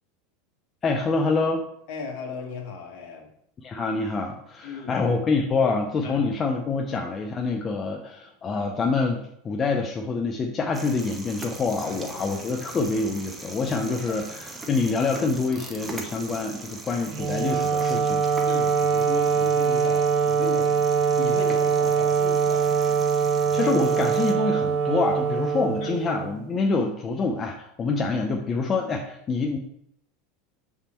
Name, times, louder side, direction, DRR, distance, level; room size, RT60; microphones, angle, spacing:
voice 1, 0.8-1.6 3.6-18.3 23.5-29.6, left 4 dB, 25° left, 2 dB, 0.7 m, -26 dB
voice 2, 1.9-3.3 4.6-5.0 6.0-6.3 11.8-12.6 14.1-14.3 18.4-20.7 21.2-22.7 25.8-26.0, left 5 dB, 60° left, 2 dB, 1.5 m, -37 dB
sound 1, 10.7-24.3, right 2 dB, 15° right, 0.9 m, -41 dB
Wind instrument woodwind instrument, 17.1-26.4, right 6 dB, 45° right, 0.6 m, -23 dB
7.1 x 3.6 x 4.4 m, 0.71 s
supercardioid pair, 125°, 0 cm